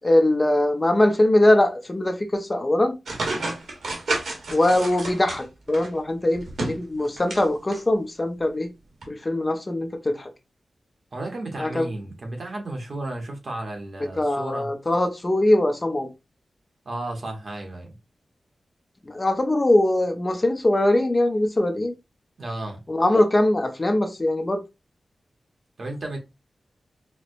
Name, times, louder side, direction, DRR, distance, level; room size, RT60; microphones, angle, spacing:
voice 1, 0.0-2.9 4.5-8.7 9.1-10.3 11.6-11.9 14.2-16.1 19.1-21.9 22.9-24.6, left 1 dB, 25° left, 0.5 m, -21 dB
sound 1, 3.1-5.9 6.3-7.4 7.7-7.8 9.0-9.1, right 2 dB, 80° right, 1.1 m, -30 dB
voice 2, 11.1-14.7 16.9-17.9 22.4-22.8 25.8-26.2, right 2 dB, 50° right, 0.8 m, -33 dB
4.3 x 2.0 x 2.5 m
wide cardioid pair, 135°, 0 cm